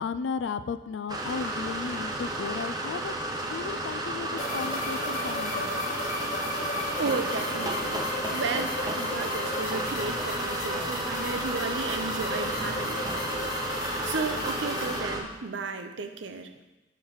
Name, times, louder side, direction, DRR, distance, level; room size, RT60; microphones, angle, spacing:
voice 1, 0.0-3.1 3.5-5.9, left 5 dB, 70° left, 13 dB, 0.4 m, -34 dB
sound 1, 1.1-15.2, right 1 dB, 20° right, 0.8 m, -32 dB
sound 2, 4.4-15.0, left 2 dB, 45° left, 1.2 m, -34 dB
voice 2, 7.0-8.1 8.3-16.5, right 4 dB, 70° right, 7 dB, 0.6 m, -34 dB
5.8 x 4.7 x 6.5 m, 1.1 s
head